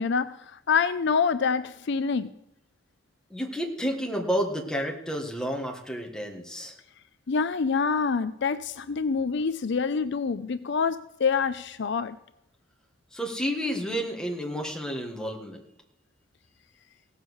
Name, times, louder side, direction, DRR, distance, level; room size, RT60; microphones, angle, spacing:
voice 1, 0.0-2.3 7.3-12.2, left 5 dB, 60° left, 0.5 m, -26 dB
voice 2, 3.3-6.7 13.1-15.6, equal, 5° left, 1.7 m, -30 dB
17.0 x 7.3 x 6.4 m
head